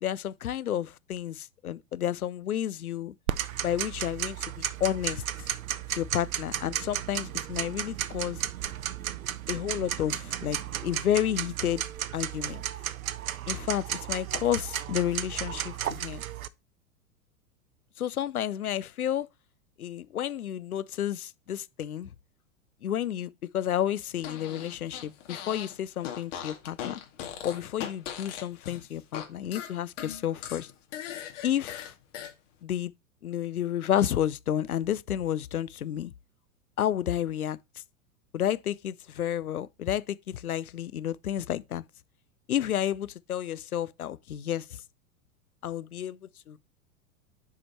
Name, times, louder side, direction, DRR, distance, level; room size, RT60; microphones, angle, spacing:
voice 1, 0.0-3.1 3.6-4.4 4.8-5.2 5.9-8.4 9.5-11.8 12.1-12.6 13.5-16.2 18.0-19.3 19.8-22.1 22.8-27.0 27.4-30.7 31.4-31.9 32.6-32.9 33.2-36.1 36.8-37.6 38.3-41.8 42.5-44.8 45.6-46.2 46.5-46.6, left 10 dB, 85° left, 0.6 m, -31 dB
Tick-tock, 3.3-16.5, right 11 dB, 75° right, 0.7 m, -34 dB
Fart, 24.2-25.7 26.0-29.3 29.5-32.3, left 9 dB, 55° left, 2.2 m, -39 dB
8.0 x 5.0 x 4.3 m
figure-of-eight pair, 95°, 42 cm